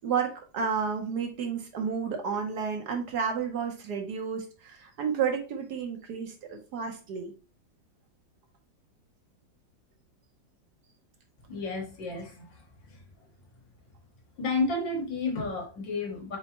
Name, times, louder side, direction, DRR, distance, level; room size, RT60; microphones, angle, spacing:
voice 1, 0.0-7.3, right 6 dB, 65° right, 1.3 m, -31 dB
voice 2, 11.5-13.0 14.4-16.4, left 3 dB, 75° left, 2.0 m, -32 dB
4.5 x 4.0 x 2.9 m
omnidirectional pair, 2.0 m